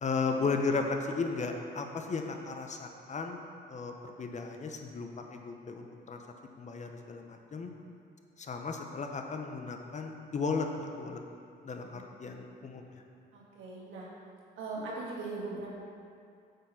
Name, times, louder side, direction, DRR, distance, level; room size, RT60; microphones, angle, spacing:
voice 1, 0.0-3.4 3.7-6.2 6.6-7.7 8.4-11.2 11.6-12.8, left 4 dB, 35° left, 4 dB, 0.8 m, -35 dB
voice 2, 13.3-14.1 14.6-15.7, right 3 dB, 90° right, -4 dB, 1.6 m, -40 dB
8.0 x 4.3 x 5.7 m, 2.4 s
cardioid pair, 90°, 20 cm